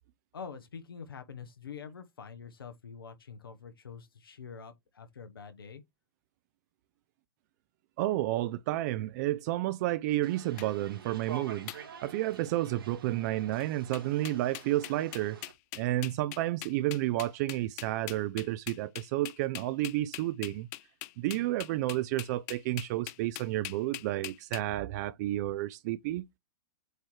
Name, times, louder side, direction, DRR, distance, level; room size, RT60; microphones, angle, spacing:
voice 1, 0.3-5.8, left 6 dB, 85° left, 1.2 m, -46 dB
voice 2, 8.0-11.7 12.0-15.4 15.7-20.7 21.2-26.2, right 15 dB, 50° right, 0.5 m, -31 dB
sound 1, 10.2-15.5, right 6 dB, 85° right, 2.2 m, -48 dB
sound 2, 10.6-10.7 11.7-11.8 12.3-12.6 13.6-13.7 13.9-24.6, left 18 dB, 50° left, 0.6 m, -42 dB
7.9 x 3.1 x 4.5 m
hypercardioid pair, 115°, 12 cm